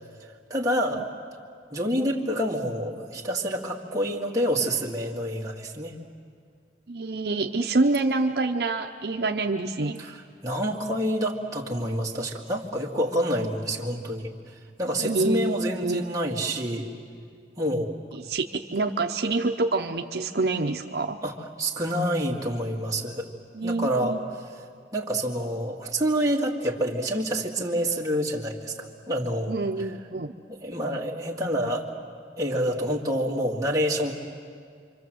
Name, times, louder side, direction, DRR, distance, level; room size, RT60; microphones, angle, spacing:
voice 1, 0.5-1.0 1.7-5.9 10.0-14.3 14.8-16.9 17.6-18.0 21.2-23.3 23.6-24.2 24.9-29.5 30.5-31.8 32.4-34.1, equal, 20° right, -2 dB, 2.2 m, -27 dB
voice 2, 6.9-10.0 15.0-15.5 15.8-16.0 18.1-21.2 23.5-24.3 29.5-30.3, right 3 dB, 60° right, 4 dB, 0.8 m, -26 dB
27.0 x 25.5 x 7.8 m, 2.2 s
head